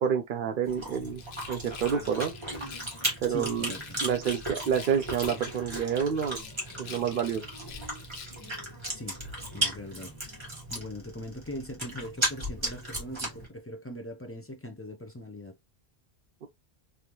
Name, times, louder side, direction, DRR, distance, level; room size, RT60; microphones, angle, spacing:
voice 1, 0.0-1.2 1.5-2.3 3.2-3.7 4.0-6.4 6.8-7.5 16.4-16.5, right 8 dB, 60° right, 0.7 m, -28 dB
Chewing mastication, 0.6-13.5, right 1 dB, 25° right, 1.5 m, -36 dB
Rattle, 1.1-3.1 3.5-5.8 6.1-8.6, left 7 dB, 85° left, 0.9 m, -46 dB
voice 2, 3.3-4.0 8.5-8.6 8.9-9.2 9.5-10.2 10.7-15.6, left 1 dB, 20° left, 0.4 m, -41 dB
3.5 x 2.6 x 2.9 m
omnidirectional pair, 1.1 m